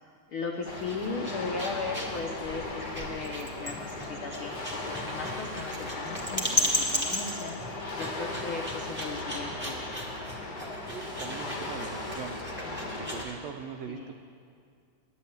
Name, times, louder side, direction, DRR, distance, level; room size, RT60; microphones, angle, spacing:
voice 1, 0.3-7.6 7.9-9.9 13.9-14.1, left 4 dB, 90° left, 1 dB, 1.1 m, -37 dB
sound 1, 0.6-13.3, left 1 dB, 5° right, 0.9 m, -35 dB
sound 2, 0.7-13.3, left 2 dB, 60° left, 1.1 m, -37 dB
sound 3, 4.5-6.4 7.9-9.8 10.8-12.9, right 3 dB, 55° right, 0.9 m, -51 dB
voice 2, 10.9-12.4 12.8-14.1, right 6 dB, 75° right, 3 dB, 1.6 m, -41 dB
11.0 x 8.6 x 9.3 m, 2.3 s
omnidirectional pair, 3.5 m